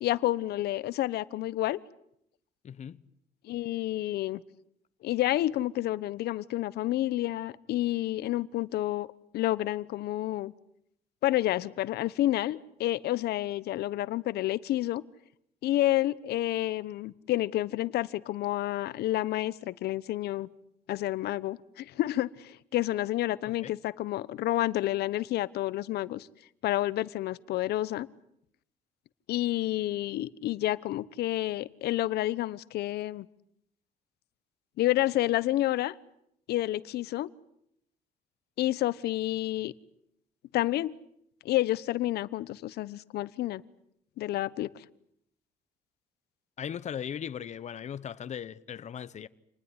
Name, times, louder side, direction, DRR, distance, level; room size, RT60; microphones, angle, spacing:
voice 1, 0.0-1.8 3.4-4.4 5.0-9.1 9.3-10.5 11.2-15.0 15.6-20.5 20.9-26.3 26.6-28.1 29.3-33.3 34.8-36.0 36.5-37.3 38.6-39.7 40.5-40.9 41.4-43.6 44.2-44.8, left 15 dB, 70° left, 1.1 m, -29 dB
voice 2, 2.6-3.0 23.5-23.7 46.6-49.3, left 8 dB, 45° left, 1.1 m, -38 dB
28.0 x 20.0 x 9.9 m
cardioid pair, 110°, 17 cm